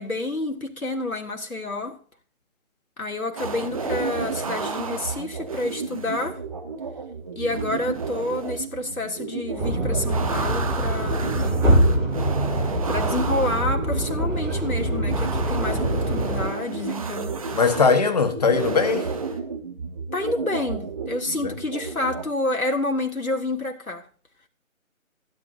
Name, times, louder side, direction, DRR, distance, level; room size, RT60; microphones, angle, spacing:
voice 1, 0.0-2.0 3.0-6.4 7.3-11.6 12.9-17.4 20.1-24.1, left 2 dB, 80° left, 3.2 m, -29 dB
sound 1, 3.4-22.2, right 4 dB, 25° right, 1.2 m, -31 dB
sound 2, 9.6-16.5, right 1 dB, 5° right, 7.1 m, -24 dB
voice 2, 17.5-19.1 21.4-21.5, left 5 dB, 30° left, 1.4 m, -20 dB
18.5 x 11.0 x 2.8 m
figure-of-eight pair, 155°, 42 cm